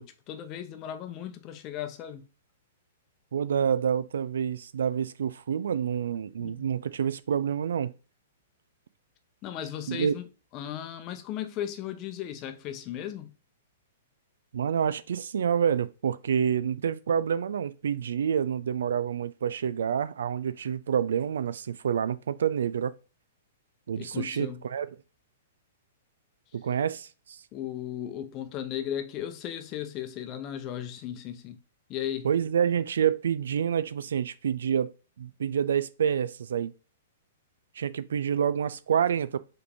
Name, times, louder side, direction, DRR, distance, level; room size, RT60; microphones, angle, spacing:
voice 1, 0.0-2.3 6.4-6.7 9.4-10.2 10.5-13.3 24.0-24.6 27.5-31.6 31.9-32.3, left 10 dB, 35° left, 0.7 m, -36 dB
voice 2, 3.3-7.9 9.9-10.1 14.5-22.9 23.9-24.9 26.5-27.4 32.2-34.9 35.2-36.7 37.8-39.4, right 8 dB, 75° right, 0.3 m, -28 dB
4.8 x 3.2 x 3.4 m
hypercardioid pair, 120°, 0 cm